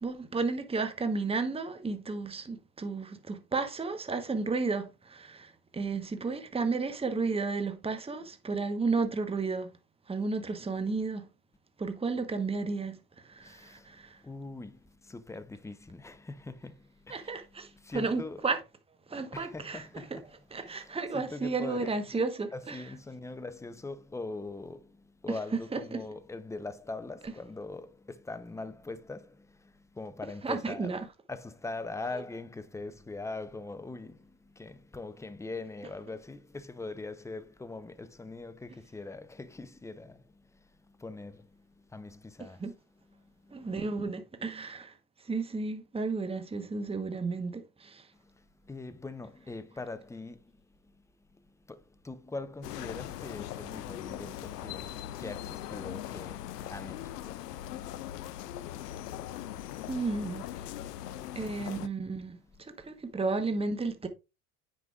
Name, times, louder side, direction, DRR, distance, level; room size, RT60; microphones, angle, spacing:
voice 1, 0.0-9.7 10.1-11.3 11.8-14.2 17.1-18.6 19.1-20.0 20.5-22.8 25.7-26.0 30.4-31.0 42.4-42.7 43.5-44.9 45.2-48.1 59.9-60.5 61.3-64.1, right 4 dB, 10° right, 1.1 m, -33 dB
voice 2, 13.4-18.5 19.3-20.3 20.6-22.2 22.5-30.9 31.3-42.6 43.1-43.7 48.1-51.0 51.3-59.2 62.5-62.6, left 3 dB, 5° left, 0.7 m, -43 dB
sound 1, 52.6-61.9, left 12 dB, 85° left, 0.6 m, -40 dB
9.3 x 5.4 x 2.4 m
hypercardioid pair, 70°, 47 cm